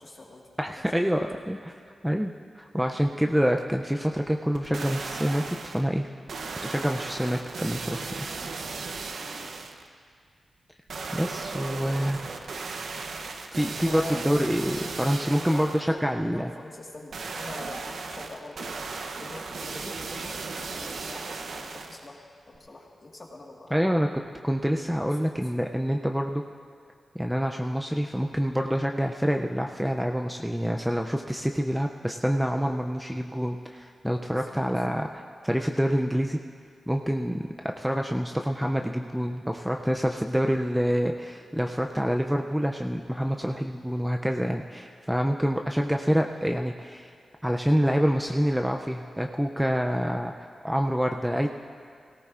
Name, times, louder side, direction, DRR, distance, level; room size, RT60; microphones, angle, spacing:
voice 1, 0.0-0.5 0.9-1.0 9.2-9.5 11.6-12.2 13.8-14.2 15.2-18.8 19.2-23.8 25.0-25.3 34.1-34.8, left 2 dB, 35° left, -1 dB, 1.6 m, -43 dB
voice 2, 0.6-1.7 2.0-6.1 6.6-8.3 8.6-8.7 11.1-12.3 13.5-16.5 23.7-26.4 27.1-36.4 36.9-47.1 47.4-51.5, equal, 5° right, 3 dB, 0.4 m, -27 dB
sound 1, 4.5-5.9 6.3-9.9 10.9-15.9 17.1-22.1 22.5-22.6, right 4 dB, 70° right, 0.7 m, -36 dB
18.0 x 17.5 x 2.5 m, 2.2 s
wide cardioid pair, 155°, 0 cm